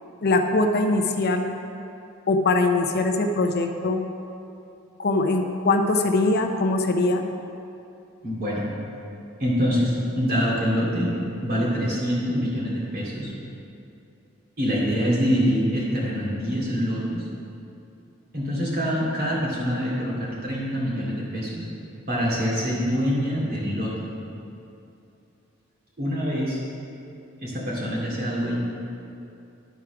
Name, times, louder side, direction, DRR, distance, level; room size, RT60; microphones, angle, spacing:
voice 1, 0.2-1.5 2.3-4.0 5.0-7.2, left 2 dB, 50° left, 5 dB, 0.6 m, -22 dB
voice 2, 8.2-8.7 9.4-13.3 14.6-17.2 18.3-21.6 22.1-24.1 26.0-26.6 27.4-28.6, equal, 50° right, -5 dB, 2.4 m, -25 dB
11.0 x 4.6 x 5.9 m, 2.7 s
head